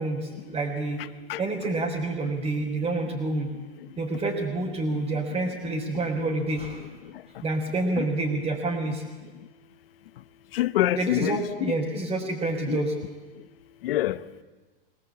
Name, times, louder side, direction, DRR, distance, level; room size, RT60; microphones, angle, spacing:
voice 1, 0.0-1.1 1.4-3.5 4.0-6.8 7.4-9.0 11.0-12.9, right 2 dB, 20° right, 3.9 m, -28 dB
voice 2, 1.0-1.4 5.1-5.2 6.8-7.1 8.0-8.1 10.5-11.7 12.7-12.8 13.8-14.2, left 14 dB, 70° left, 1.0 m, -27 dB
23.5 x 18.5 x 8.7 m
hypercardioid pair, 130°, 29 cm